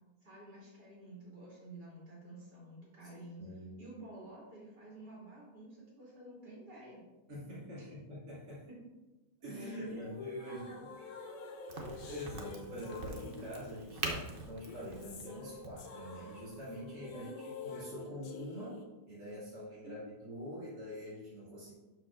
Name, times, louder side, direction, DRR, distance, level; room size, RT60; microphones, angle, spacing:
voice 1, 0.2-3.5 3.8-7.0 7.7-8.0 8.7-8.8 9.5-10.0 10.5-12.2 17.1-17.4 19.8-20.1, right 2 dB, 80° right, -7 dB, 3.6 m, -51 dB
voice 2, 3.4-3.8 7.3-8.7 9.4-10.7 12.1-17.3 17.6-21.7, equal, 60° right, -11 dB, 2.8 m, -45 dB
sound 1, 9.9-18.8, left 3 dB, 55° left, 1.1 m, -49 dB
Crack, 11.7-17.1, right 2 dB, 40° right, 0.9 m, -44 dB
12.0 x 5.0 x 2.6 m, 1.1 s
omnidirectional pair, 1.8 m